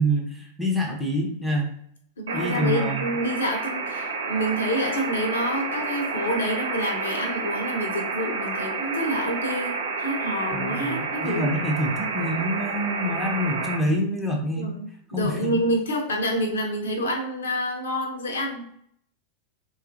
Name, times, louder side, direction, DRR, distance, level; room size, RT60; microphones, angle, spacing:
voice 1, 0.0-1.7 2.3-3.0 10.5-14.7 15.1-15.5, equal, ahead, -1 dB, 0.6 m, -26 dB
voice 2, 2.2-11.5 14.5-18.6, equal, 70° left, 1 dB, 0.6 m, -28 dB
sound 1, 2.3-13.8, right 4 dB, 65° right, 0.5 m, -30 dB
2.7 x 2.3 x 2.5 m, 0.68 s
figure-of-eight pair, 90°, 0 cm